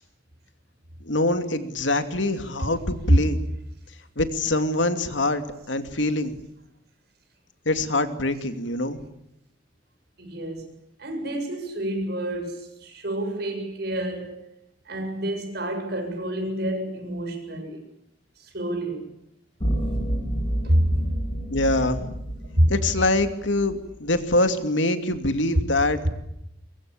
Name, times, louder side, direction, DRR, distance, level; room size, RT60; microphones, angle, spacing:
voice 1, 1.0-3.4 4.2-5.4 5.7-6.3 7.7-9.0 21.5-22.2 22.7-26.1, left 2 dB, 80° left, 8 dB, 2.7 m, -24 dB
voice 2, 10.2-10.7 11.0-14.5 14.9-17.8 18.4-19.1 20.6-21.1 21.7-21.8 22.5-22.7 26.0-26.1, right 1 dB, 60° right, 5 dB, 7.6 m, -26 dB
sound 1, 19.6-23.9, right 1 dB, 30° left, 7.7 m, -29 dB
24.0 x 23.0 x 8.7 m, 0.80 s
head